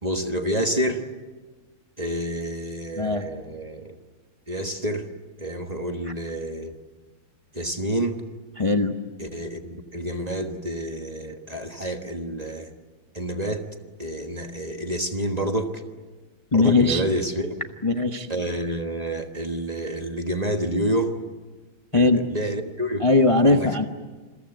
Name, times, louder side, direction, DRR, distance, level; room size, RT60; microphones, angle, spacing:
voice 1, 0.0-1.1 2.0-4.0 4.5-5.1 5.4-6.7 7.5-8.2 9.2-12.7 13.1-13.7 14.0-15.8 16.5-17.5 18.3-21.2 21.9-23.1 23.5-23.8, right 1 dB, 25° right, 5 dB, 1.1 m, -28 dB
voice 2, 3.0-3.3 8.6-9.0 16.5-17.0 17.8-18.3 21.9-22.2 23.0-23.8, left 3 dB, 35° left, 5 dB, 0.5 m, -19 dB
28.0 x 22.5 x 8.0 m, 1.3 s
omnidirectional pair, 2.4 m